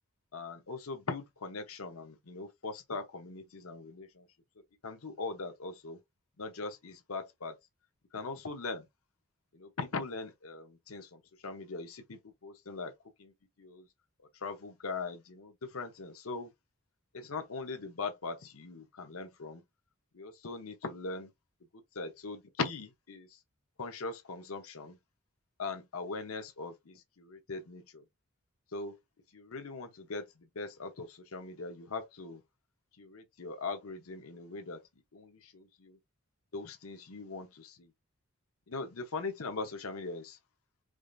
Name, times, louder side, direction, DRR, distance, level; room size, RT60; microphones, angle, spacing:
voice 1, 0.3-4.3 4.8-6.0 6.4-7.6 8.1-8.8 9.5-12.9 13.6-13.9 14.4-16.5 17.1-19.6 20.1-21.3 21.9-23.3 23.8-25.0 25.6-28.0 28.7-28.9 29.3-32.4 33.0-34.8 35.1-36.0 36.5-37.9 38.7-40.4, left 3 dB, 90° left, 0.8 m, -40 dB
4.9 x 2.5 x 2.4 m
head